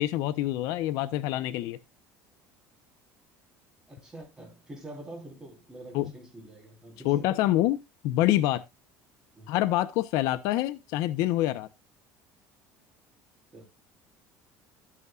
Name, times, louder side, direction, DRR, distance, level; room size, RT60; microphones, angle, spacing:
voice 1, 0.0-1.8 5.9-6.1 7.0-7.8 8.0-8.6 9.5-11.7, left 15 dB, 60° left, 0.7 m, -26 dB
voice 2, 3.9-7.3 9.3-9.5 13.5-13.6, right 1 dB, 10° right, 3.9 m, -45 dB
12.0 x 8.5 x 2.4 m
cardioid pair, 170°, 6 cm